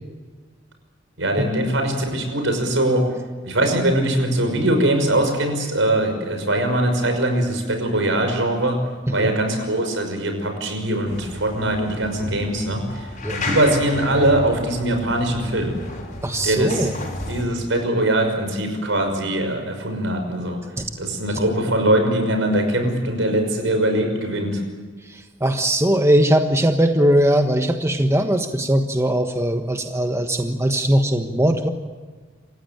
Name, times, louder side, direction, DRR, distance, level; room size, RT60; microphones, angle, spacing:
voice 1, 1.2-3.1 3.4-8.8 9.1-15.8 16.4-16.9 17.3-20.6 21.0-24.6, right 1 dB, 75° right, 5 dB, 5.9 m, -21 dB
sound 1, 11.0-17.4, left 1 dB, 40° left, 5.9 m, -33 dB
voice 2, 16.2-16.9 20.8-20.9 25.1-31.7, right 1 dB, 15° right, 5 dB, 1.3 m, -20 dB
28.0 x 15.5 x 9.0 m, 1.4 s
head